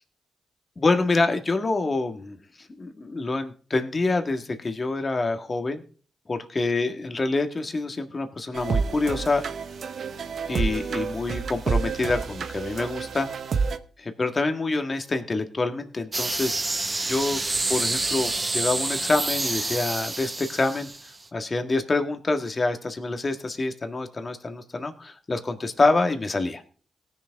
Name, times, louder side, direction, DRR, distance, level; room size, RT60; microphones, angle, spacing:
voice 1, 0.8-5.8 6.3-9.4 10.5-13.3 14.0-16.6 17.1-17.4 17.7-26.6, left 3 dB, 40° left, 6 dB, 1.8 m, -26 dB
sound 1, 8.5-13.8, right 5 dB, 65° right, 0.8 m, -29 dB
sound 2, 16.1-21.2, right 3 dB, 35° right, 0.8 m, -28 dB
18.5 x 6.9 x 3.6 m, 0.40 s
hypercardioid pair, 40°, 0 cm